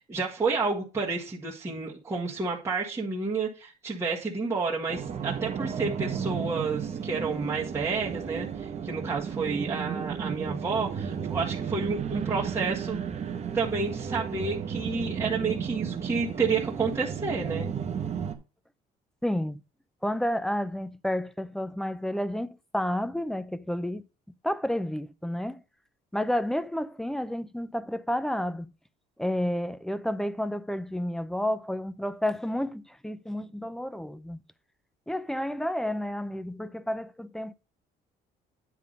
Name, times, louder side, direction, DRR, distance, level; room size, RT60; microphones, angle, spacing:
voice 1, 0.0-13.0 13.5-17.7, right 4 dB, 15° right, 1.8 m, -30 dB
sound 1, 4.9-18.3, right 7 dB, 40° right, 1.0 m, -33 dB
voice 2, 19.2-19.6 20.0-24.1 24.4-25.6 26.1-28.7 29.2-34.4 35.1-37.5, left 1 dB, 5° left, 0.5 m, -30 dB
9.7 x 3.6 x 5.2 m
cardioid pair, 110°, 17 cm